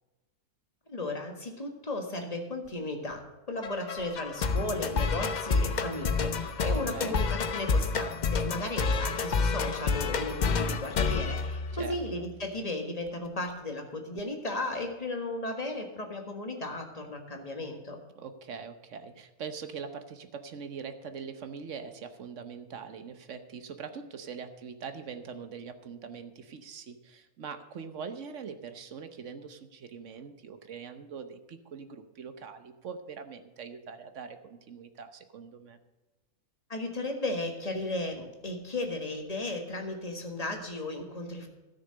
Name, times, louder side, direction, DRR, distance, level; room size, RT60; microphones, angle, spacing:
voice 1, 0.9-3.2 3.5-18.0 36.7-41.5, left 2 dB, 25° left, 3 dB, 1.6 m, -35 dB
sound 1, 3.6-12.2, left 4 dB, 55° left, 0.5 m, -29 dB
voice 2, 11.7-12.2 18.2-35.8, right 6 dB, 60° right, 9 dB, 1.2 m, -42 dB
13.0 x 6.7 x 6.4 m, 1.2 s
omnidirectional pair, 1.5 m